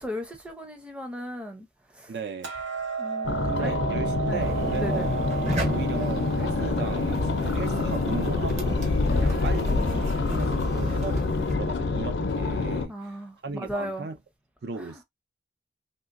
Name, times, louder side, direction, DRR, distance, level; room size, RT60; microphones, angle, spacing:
voice 1, 0.0-1.7 1.9-2.1 3.0-3.7 4.3-4.5 4.8-5.1 5.4-5.6 9.0-9.9 12.9-14.1 14.8-15.0, equal, 5° right, 0.6 m, -36 dB
voice 2, 2.1-2.5 3.4-5.2 5.6-8.8 9.1-14.2 14.6-15.0, right 4 dB, 60° right, 0.4 m, -36 dB
Hammer, 2.4-8.7, right 5 dB, 85° right, 1.1 m, -34 dB
sound 1, 3.2-12.9, left 3 dB, 80° left, 0.5 m, -26 dB
sound 2, 4.4-11.5, right 1 dB, 40° right, 1.0 m, -34 dB
3.1 x 2.8 x 2.5 m
head